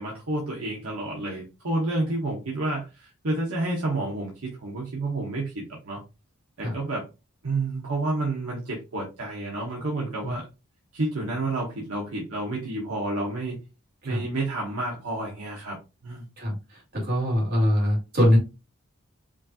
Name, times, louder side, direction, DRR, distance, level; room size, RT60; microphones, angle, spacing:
voice 1, 0.0-6.0 6.6-7.0 7.4-10.5 10.9-13.6 14.0-15.8 16.0-16.3, right 2 dB, 70° right, -2 dB, 1.0 m, -30 dB
voice 2, 16.4-18.4, equal, 45° right, -3 dB, 2.0 m, -23 dB
5.0 x 2.5 x 2.7 m, 0.28 s
head